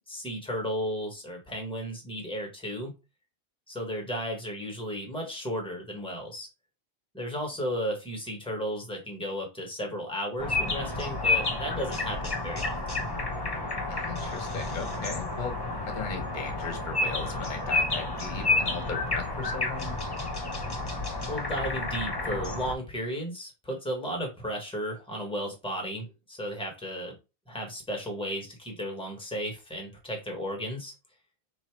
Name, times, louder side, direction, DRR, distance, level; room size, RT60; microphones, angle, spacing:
voice 1, 0.1-2.9 3.7-6.5 7.1-13.0 21.3-27.1 27.5-30.9, equal, 5° left, 2 dB, 1.2 m, -34 dB
sound 1, 10.4-22.7, left 2 dB, 25° left, 0.7 m, -30 dB
voice 2, 13.9-15.6 15.9-20.0, left 5 dB, 45° left, 4 dB, 1.0 m, -37 dB
3.1 x 2.8 x 4.5 m, 0.28 s
omnidirectional pair, 1.2 m